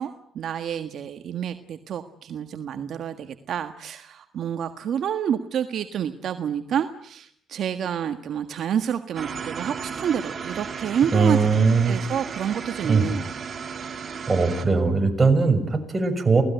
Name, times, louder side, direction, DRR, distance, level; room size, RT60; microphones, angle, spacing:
voice 1, 0.0-13.3, right 8 dB, 70° right, 8 dB, 1.5 m, -29 dB
sound 1, 9.1-14.6, right 6 dB, 45° right, 3.3 m, -34 dB
voice 2, 11.1-12.0 12.8-13.0 14.3-16.4, right 4 dB, 25° right, 5 dB, 6.2 m, -20 dB
28.5 x 18.5 x 9.2 m, 0.65 s
cardioid pair, 90°, 0 cm